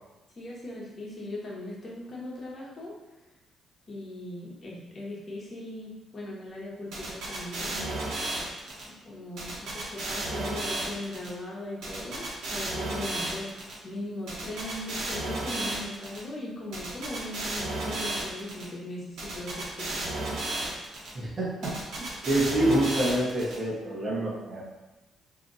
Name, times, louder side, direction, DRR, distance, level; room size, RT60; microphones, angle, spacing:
voice 1, 0.4-3.0 3.9-7.9 9.0-20.3, left 1 dB, 40° left, -4 dB, 1.1 m, -39 dB
sound 1, 6.9-8.8 9.4-11.3 11.8-13.7 14.3-16.2 16.7-18.6 19.2-21.1 21.6-23.5, right 2 dB, 85° right, 1.0 m, -33 dB
voice 2, 21.1-24.6, right 1 dB, 35° right, -5 dB, 1.1 m, -27 dB
2.8 x 2.5 x 4.0 m, 1.1 s
cardioid pair, 90°, 0 cm